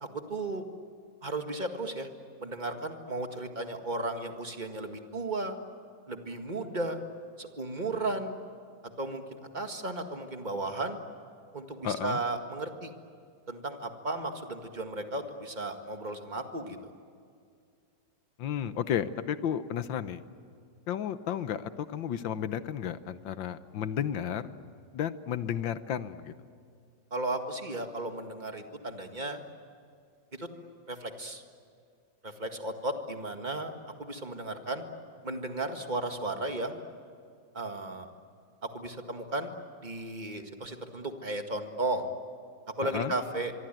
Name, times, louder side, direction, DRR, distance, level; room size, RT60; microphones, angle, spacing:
voice 1, 0.0-0.6 1.2-2.1 2.4-5.6 6.1-7.0 7.4-8.4 9.0-11.0 11.5-12.9 13.5-16.9 27.1-29.4 30.3-30.5 30.9-31.4 32.2-33.7 34.0-34.9 35.2-36.8 37.5-38.1 38.6-39.5 39.8-42.1 42.8-43.5, right 2 dB, 25° right, 5 dB, 1.9 m, -35 dB
voice 2, 11.8-12.2 18.4-20.2 20.9-24.5 24.9-26.3 42.8-43.1, left 9 dB, 90° left, 12 dB, 1.7 m, -33 dB
24.5 x 24.5 x 9.2 m, 2.3 s
omnidirectional pair, 2.0 m